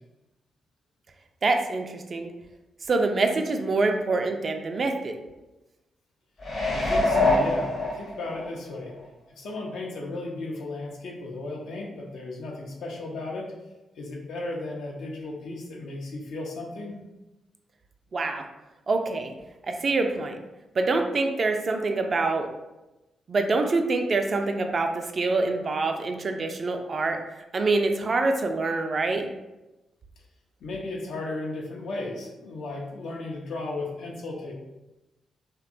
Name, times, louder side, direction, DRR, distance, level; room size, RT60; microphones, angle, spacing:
voice 1, 1.4-2.3 2.9-5.1 18.1-18.4 18.9-19.3 19.6-20.4 20.8-22.5 23.3-27.2 27.5-29.3, right 3 dB, 50° right, 5 dB, 0.3 m, -25 dB
sound 1, 6.4-8.5 9.0-9.1, left 2 dB, 55° left, 1.0 m, -24 dB
voice 2, 6.6-8.9 9.4-13.5 14.0-17.0 30.6-34.5, left 2 dB, 75° left, -2 dB, 0.6 m, -35 dB
2.8 x 2.2 x 2.5 m, 1.0 s
hypercardioid pair, 45°, 0 cm